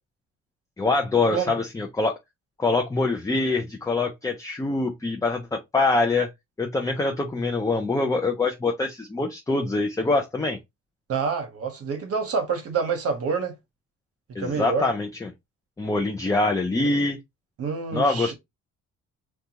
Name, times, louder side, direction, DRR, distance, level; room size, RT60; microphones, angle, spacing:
voice 1, 0.8-2.2 2.6-6.3 6.6-10.6 14.3-15.3 15.8-17.2 17.9-18.3, left 3 dB, 10° left, 0.4 m, -24 dB
voice 2, 11.1-13.6 14.4-14.9 17.6-18.3, right 5 dB, 50° right, 0.9 m, -27 dB
2.7 x 2.3 x 2.7 m
cardioid pair, 90°, 30 cm